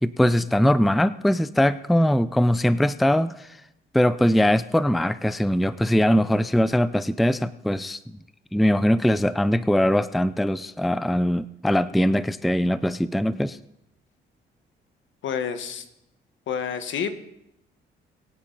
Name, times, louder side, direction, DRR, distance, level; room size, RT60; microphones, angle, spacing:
voice 1, 0.0-3.5 3.9-8.0 8.5-13.6, equal, ahead, 16 dB, 0.4 m, -21 dB
voice 2, 15.2-15.8 16.5-17.1, left 7 dB, 70° left, 9 dB, 1.3 m, -28 dB
22.5 x 8.3 x 4.0 m, 0.82 s
cardioid pair, 90°, 20 cm